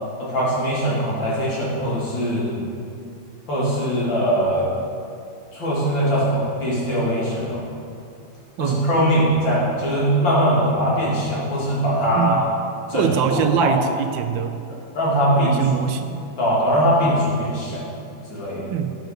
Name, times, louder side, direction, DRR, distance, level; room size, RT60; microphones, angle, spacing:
voice 1, 0.2-2.6 3.5-4.7 5.5-7.6 8.6-12.5 12.9-13.7 15.0-15.6 16.4-17.8 18.3-18.7, equal, 80° left, -7 dB, 3.5 m, -21 dB
voice 2, 12.9-14.6 15.4-16.2 18.7-19.0, right 8 dB, 90° right, 7 dB, 1.3 m, -23 dB
10.5 x 6.2 x 6.6 m, 2.5 s
omnidirectional pair, 2.0 m